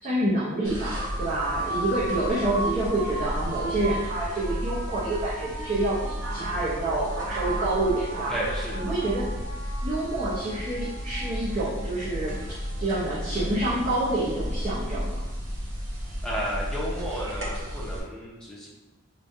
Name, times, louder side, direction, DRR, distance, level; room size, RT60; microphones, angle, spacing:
voice 1, 0.0-8.3 8.7-9.3 9.8-12.4 12.8-15.2, right 2 dB, 35° right, -11 dB, 0.8 m, -27 dB
sound 1, 0.6-18.0, equal, 60° right, 1.0 m, -32 dB
voice 2, 8.3-8.8 16.2-18.7, equal, 5° left, -6 dB, 0.8 m, -32 dB
5.1 x 2.3 x 2.7 m, 1.1 s
head